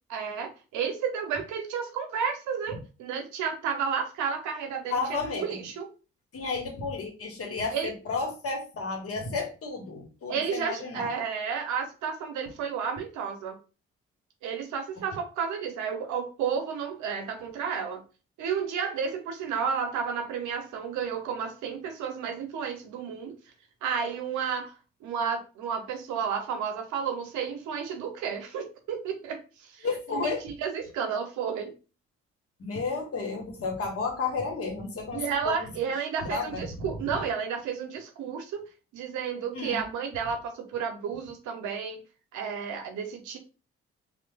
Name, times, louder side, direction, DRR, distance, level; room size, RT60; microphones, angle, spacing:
voice 1, 0.1-5.0 5.4-5.9 7.7-7.9 10.3-13.5 14.4-18.0 18.4-23.4 23.8-24.7 25.0-29.9 30.1-31.7 35.1-38.6 38.9-42.0 42.3-43.4, right 6 dB, 75° right, 5 dB, 0.6 m, -32 dB
voice 2, 4.9-5.6 6.3-11.1 29.8-30.4 32.6-35.7 36.2-36.7 39.5-39.8, left 4 dB, 50° left, 2 dB, 1.0 m, -32 dB
3.1 x 2.1 x 2.2 m, 0.33 s
hypercardioid pair, 45°, 30 cm